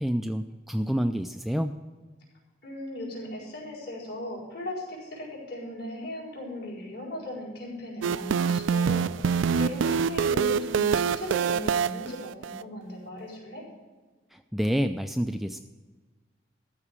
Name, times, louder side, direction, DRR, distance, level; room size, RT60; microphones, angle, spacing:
voice 1, 0.0-1.7 14.3-15.6, equal, ahead, 6 dB, 0.3 m, -28 dB
voice 2, 2.6-13.6, left 1 dB, 60° left, -5 dB, 4.6 m, -38 dB
sound 1, 8.0-12.6, right 6 dB, 85° right, 0.4 m, -25 dB
13.5 x 4.8 x 8.7 m, 1.3 s
head